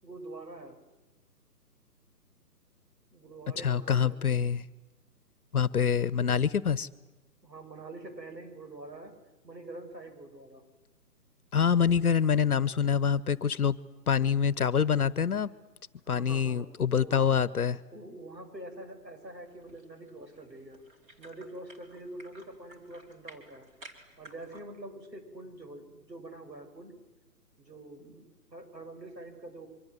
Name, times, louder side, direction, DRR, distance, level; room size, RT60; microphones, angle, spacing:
voice 1, 0.0-0.8 3.1-4.2 7.4-9.1 9.4-10.6 16.1-16.7 17.0-17.3 17.9-20.8 21.2-23.7 24.2-26.9 27.6-29.7, right 2 dB, 85° right, 4 dB, 7.8 m, -45 dB
voice 2, 3.6-4.6 5.5-6.9 11.5-13.8 14.1-15.5 16.1-17.8, left 7 dB, 60° left, 19 dB, 1.1 m, -26 dB
sound 1, 19.2-24.6, right 1 dB, 15° right, 2.9 m, -55 dB
25.5 x 24.5 x 7.9 m, 1.1 s
figure-of-eight pair, 140°, 49 cm